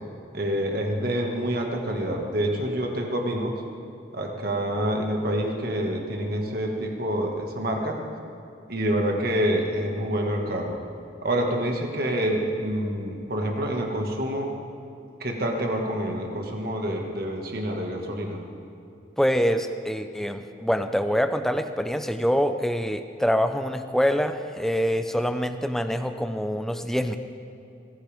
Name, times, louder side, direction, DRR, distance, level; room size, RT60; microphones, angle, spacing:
voice 1, 0.3-3.6 4.1-8.0 8.7-10.8 11.2-14.5 15.2-18.4, right 1 dB, 55° right, 1 dB, 1.8 m, -27 dB
voice 2, 19.2-27.2, equal, ahead, 8 dB, 0.5 m, -25 dB
21.0 x 15.0 x 3.6 m, 2.7 s
head